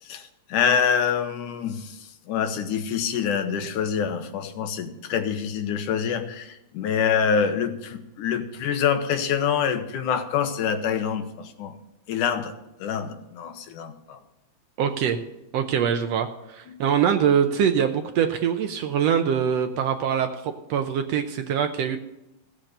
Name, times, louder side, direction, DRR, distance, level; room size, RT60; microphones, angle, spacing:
voice 1, 0.0-11.7 12.1-12.5 12.8-14.2, left 7 dB, 85° left, 7 dB, 2.6 m, -26 dB
voice 2, 14.8-15.2 15.5-22.0, right 8 dB, 75° right, 7 dB, 1.6 m, -23 dB
15.5 x 7.5 x 6.6 m, 0.91 s
omnidirectional pair, 3.5 m